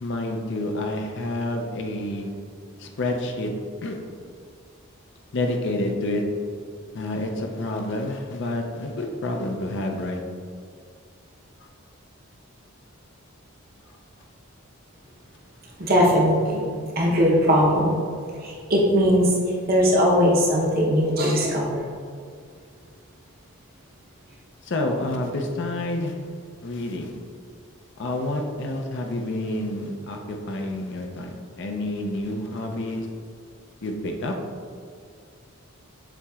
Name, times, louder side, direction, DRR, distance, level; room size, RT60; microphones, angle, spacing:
voice 1, 0.0-2.3 2.8-3.5 3.8-4.0 5.3-6.2 6.9-10.2 11.6-11.7 13.9-14.0 24.6-26.2 26.6-27.2 28.0-33.1 33.8-34.3, left 1 dB, 55° left, 3 dB, 0.5 m, -28 dB
voice 2, 15.8-16.7 17.0-18.0 18.4-19.3 19.7-21.8, equal, 45° right, -3 dB, 0.8 m, -19 dB
7.2 x 2.8 x 2.4 m, 2.2 s
head